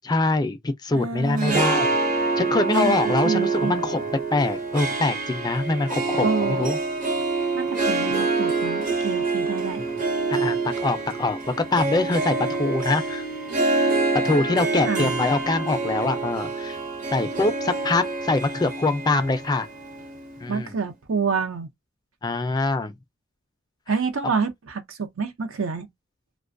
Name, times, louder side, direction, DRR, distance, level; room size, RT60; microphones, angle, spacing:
voice 1, 0.0-1.9 2.4-6.8 9.8-9.9 10.3-13.2 13.8-13.9 14.2-16.8 17.1-19.7 20.4-20.8 22.2-22.9, left 2 dB, 20° left, 0.3 m, -24 dB
voice 2, 0.9-1.7 2.7-3.0 3.2-3.7 6.2-6.7 7.5-9.8 14.9-15.1 20.5-21.7 23.9-25.9, right 5 dB, 75° right, 0.6 m, -27 dB
Harp, 1.2-20.6, right 3 dB, 40° right, 0.7 m, -26 dB
2.5 x 2.2 x 2.4 m
head